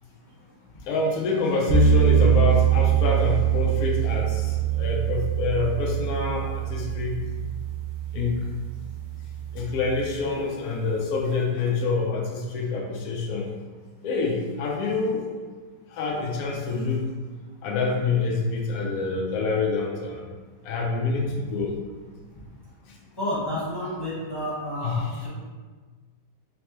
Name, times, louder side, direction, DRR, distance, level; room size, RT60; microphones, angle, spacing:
voice 1, 0.9-7.2 8.1-8.4 9.5-13.5 14.0-15.2 15.9-17.0 17.6-20.2 20.6-21.7 24.8-25.1, left 4 dB, 70° left, -2 dB, 1.0 m, -26 dB
sound 1, 1.7-9.9, right 8 dB, 60° right, 0.9 m, -23 dB
voice 2, 23.2-25.3, left 1 dB, 15° left, -10 dB, 1.2 m, -30 dB
3.2 x 3.1 x 3.0 m, 1.4 s
omnidirectional pair, 1.9 m